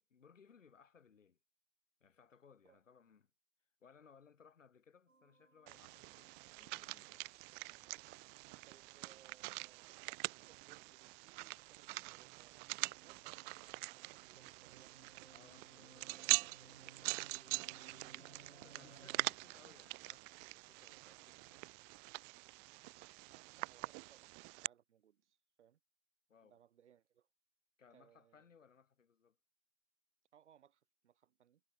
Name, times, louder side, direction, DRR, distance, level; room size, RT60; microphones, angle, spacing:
voice 1, 0.0-1.4 2.0-3.3 3.8-7.3 15.3-18.0 18.6-21.6 26.3-26.6 27.8-29.4, left 6 dB, 75° left, 5.7 m, -66 dB
sound 1, 5.1-19.3, right 3 dB, 90° right, 6.5 m, -65 dB
sound 2, 5.7-24.7, right 33 dB, 25° right, 0.8 m, -44 dB
voice 2, 8.7-15.0 23.3-25.8 26.4-27.3 27.9-28.5 30.3-31.6, right 9 dB, 65° right, 4.9 m, -68 dB
figure-of-eight pair, 120°, 38 cm